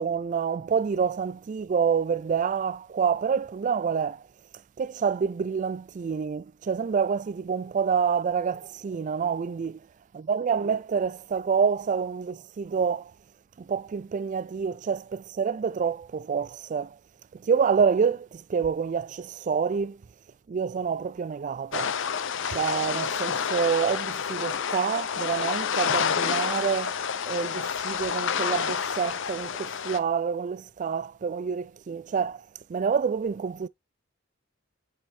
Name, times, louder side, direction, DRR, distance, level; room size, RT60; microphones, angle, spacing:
voice 1, 0.0-4.2 4.8-9.8 10.1-13.1 13.6-17.0 17.3-20.0 20.5-22.0 22.5-27.0 27.3-32.4 32.7-33.7, right 6 dB, 40° right, 0.3 m, -27 dB
sound 1, 21.7-30.0, left 7 dB, 65° left, 0.6 m, -29 dB
7.3 x 5.1 x 2.7 m
head